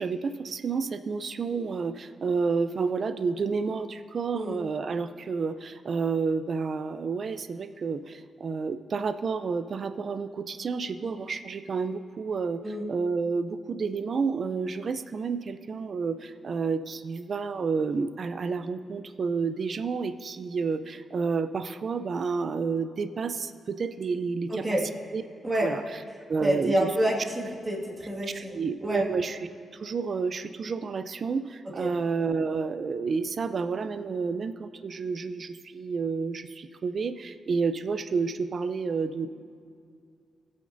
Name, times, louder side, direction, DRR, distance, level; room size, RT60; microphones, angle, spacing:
voice 1, 0.0-12.6 12.9-24.8 25.1-25.2 25.6-25.8 26.3-26.9 28.3-29.5 29.8-39.3, right 5 dB, 50° right, 11 dB, 0.4 m, -30 dB
voice 2, 24.5-24.9 25.4-25.7 26.4-29.1 31.8-31.9, right 1 dB, 20° right, -2 dB, 1.9 m, -28 dB
20.5 x 8.5 x 2.6 m, 2.4 s
wide cardioid pair, 125°, 0 cm